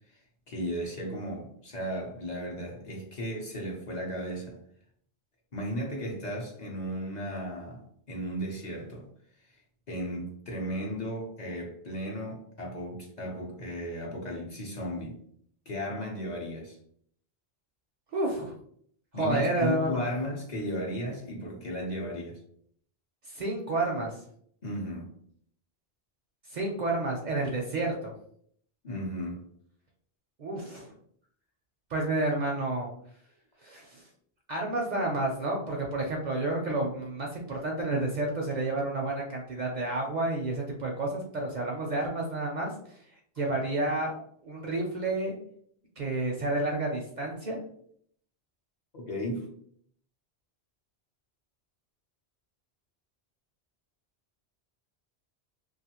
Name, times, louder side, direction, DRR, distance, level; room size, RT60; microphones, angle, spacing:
voice 1, 0.1-4.6 5.5-9.1 9.9-15.2 15.7-16.8 19.1-22.4 24.6-25.1 28.8-29.4 48.9-49.5, equal, 50° left, -1 dB, 0.7 m, -35 dB
voice 2, 18.1-18.5 19.1-20.1 23.2-24.2 26.5-28.1 30.4-30.9 31.9-32.9 33.6-34.1 34.5-43.1 43.4-45.4 46.0-47.6, right 2 dB, 55° right, 0 dB, 0.5 m, -30 dB
2.5 x 2.4 x 2.8 m, 0.63 s
omnidirectional pair, 1.1 m